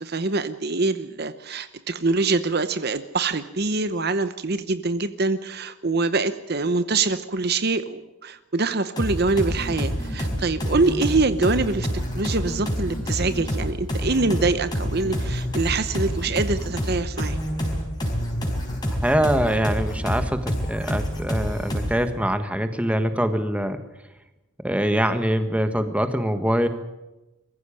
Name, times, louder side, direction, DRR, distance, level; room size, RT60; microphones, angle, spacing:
voice 1, 0.0-11.9 12.1-17.4, right 3 dB, 45° right, 11 dB, 0.8 m, -24 dB
sound 1, 9.0-22.1, equal, 20° left, 4.7 m, -27 dB
voice 2, 18.8-23.8 24.6-26.7, equal, 5° right, 8 dB, 1.4 m, -24 dB
23.0 x 15.0 x 8.7 m, 1.0 s
head